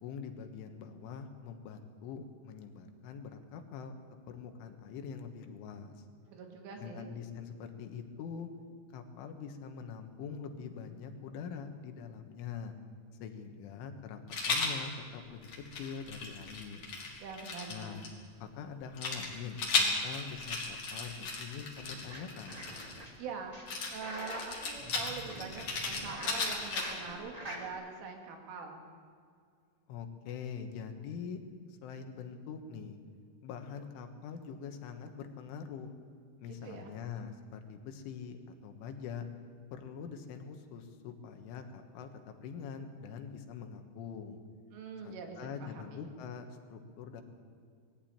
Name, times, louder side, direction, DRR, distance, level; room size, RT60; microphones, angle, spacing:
voice 1, 0.0-4.0 4.3-6.0 6.8-8.5 8.9-12.8 13.2-15.5 15.8-16.9 17.7-18.1 18.4-22.5 29.9-31.4 31.8-33.0 33.4-35.9 36.4-38.4 38.6-39.3 39.7-44.4 45.0-47.2, left 6 dB, 80° left, 6 dB, 3.9 m, -44 dB
voice 2, 6.2-7.1 17.2-18.0 23.2-23.5 23.9-28.8 36.5-36.9 44.7-46.1, right 5 dB, 85° right, 2 dB, 4.8 m, -44 dB
Rattle, 14.3-14.8 15.4-18.1 19.0-23.1 23.7-27.1, left 4 dB, 40° left, 3.4 m, -35 dB
sound 1, 21.8-23.1 23.5-27.7, equal, 30° right, 0.6 m, -46 dB
20.5 x 14.5 x 8.9 m, 2.2 s
omnidirectional pair, 5.5 m